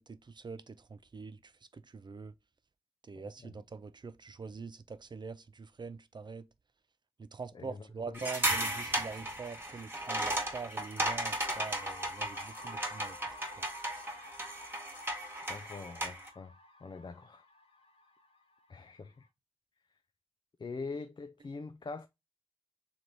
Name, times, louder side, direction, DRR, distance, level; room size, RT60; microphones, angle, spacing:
voice 1, 0.0-2.3 3.1-6.5 7.2-13.2 13.6-13.7, right 4 dB, 50° right, 0.4 m, -44 dB
voice 2, 3.2-3.5 7.5-8.3 15.5-16.5 16.8-17.4 18.7-19.3 20.6-22.1, left 4 dB, 50° left, 0.4 m, -44 dB
sound 1, 8.1-16.3, right 1 dB, 20° right, 1.2 m, -35 dB
sound 2, 11.4-19.2, left 2 dB, 70° left, 0.9 m, -53 dB
3.3 x 2.9 x 3.8 m
wide cardioid pair, 65°, 10 cm